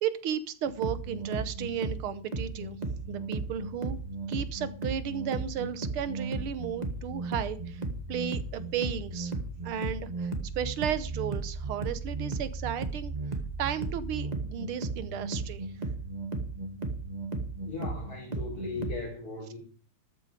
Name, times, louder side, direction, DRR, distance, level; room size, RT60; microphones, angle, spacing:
voice 1, 0.0-2.8 3.1-4.0 4.3-7.8 8.1-9.3 9.6-13.1 13.6-15.7 18.8-18.9, right 9 dB, 85° right, 13 dB, 1.8 m, -34 dB
sound 1, 0.7-19.0, right 3 dB, 20° right, 1.3 m, -35 dB
voice 2, 17.6-19.6, left 4 dB, 45° left, -6 dB, 4.4 m, -38 dB
13.5 x 8.6 x 4.9 m, 0.39 s
omnidirectional pair, 2.3 m